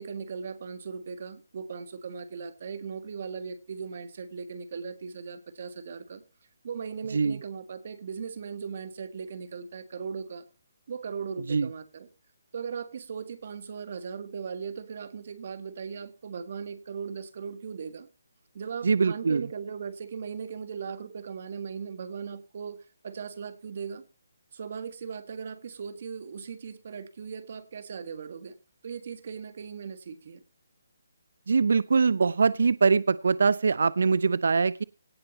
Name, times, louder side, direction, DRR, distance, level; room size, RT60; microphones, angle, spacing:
voice 1, 0.0-6.2 6.6-10.4 10.9-12.1 12.5-18.1 18.5-24.0 24.5-28.5 28.8-30.4, right 6 dB, 50° right, 11 dB, 1.7 m, -38 dB
voice 2, 18.8-19.5 31.5-34.8, right 5 dB, 70° right, 20 dB, 0.5 m, -23 dB
17.5 x 6.0 x 4.2 m, 0.30 s
hypercardioid pair, 165°, 0 cm